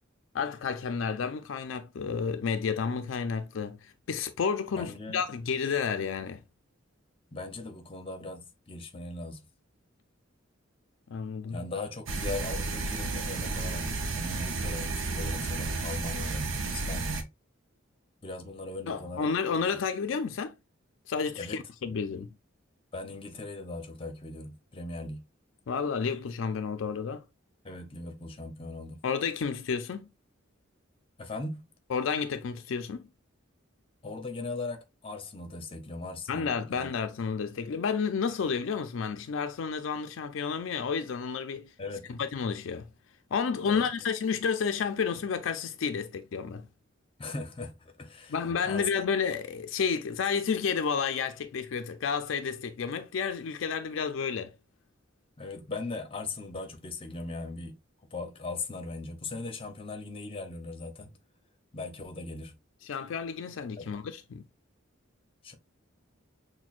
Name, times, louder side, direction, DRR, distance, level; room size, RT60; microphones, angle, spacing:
voice 1, 0.3-6.4 11.1-11.6 18.9-20.5 21.1-22.3 25.7-27.2 29.0-30.1 31.9-33.1 36.3-41.7 42.1-42.8 43.3-46.7 48.3-54.5 62.8-64.4, left 6 dB, 75° left, 0.4 m, -31 dB
voice 2, 4.7-5.2 7.3-9.4 11.5-17.3 18.2-19.8 21.4-21.6 21.9-22.0 22.9-25.2 27.6-29.0 31.2-31.7 34.0-36.9 41.8-42.1 43.6-44.1 47.2-48.3 48.6-48.9 55.4-57.8 58.1-61.1 61.7-62.5 63.8-63.9 65.4-65.5, left 3 dB, 30° left, 0.7 m, -39 dB
sound 1, 12.1-17.2, right 3 dB, 85° right, 0.6 m, -32 dB
6.0 x 2.2 x 2.4 m
head